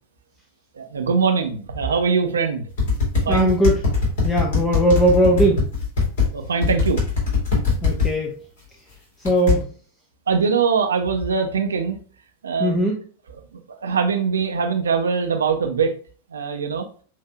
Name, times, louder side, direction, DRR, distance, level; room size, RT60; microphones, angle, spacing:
voice 1, 0.8-2.6 3.2-3.5 6.3-7.0 10.3-12.0 12.4-12.8 13.5-15.9 16.3-16.8, right 5 dB, 70° right, 5 dB, 0.7 m, -22 dB
sound 1, 2.8-6.3 6.6-8.1 9.2-9.6, left 5 dB, 55° left, 2.3 m, -20 dB
voice 2, 3.3-3.8 4.2-5.6 7.8-8.3 9.2-9.7 12.6-13.0, equal, 15° left, 0 dB, 0.9 m, -19 dB
7.5 x 2.7 x 2.3 m, 0.42 s
figure-of-eight pair, 90°, 0 cm